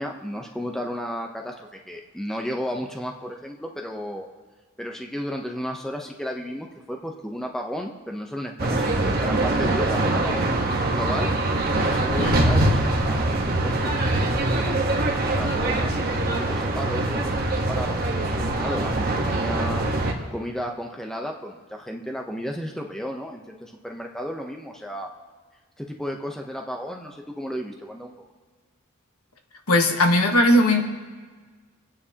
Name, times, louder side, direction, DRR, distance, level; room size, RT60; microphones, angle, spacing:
voice 1, 0.0-4.3 4.8-11.3 11.8-15.0 15.4-19.8 20.3-25.1 25.8-28.1, equal, ahead, 1 dB, 0.7 m, -33 dB
sound 1, 8.6-20.1, right 2 dB, 45° right, 1.2 m, -23 dB
voice 2, 29.7-30.8, left 1 dB, 85° left, 3 dB, 1.4 m, -18 dB
28.0 x 9.6 x 2.9 m, 1.5 s
head